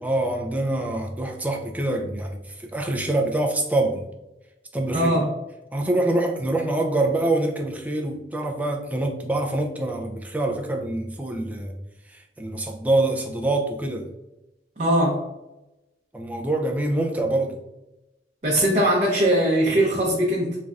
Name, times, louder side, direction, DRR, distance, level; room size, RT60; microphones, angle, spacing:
voice 1, 0.0-4.0 4.7-5.2 5.7-11.7 12.1-14.1 16.1-17.6, right 2 dB, 10° right, 1 dB, 0.4 m, -25 dB
voice 2, 4.9-5.3 14.8-15.2 18.4-20.6, right 1 dB, 40° right, -5 dB, 0.7 m, -20 dB
3.8 x 3.2 x 2.4 m, 0.95 s
head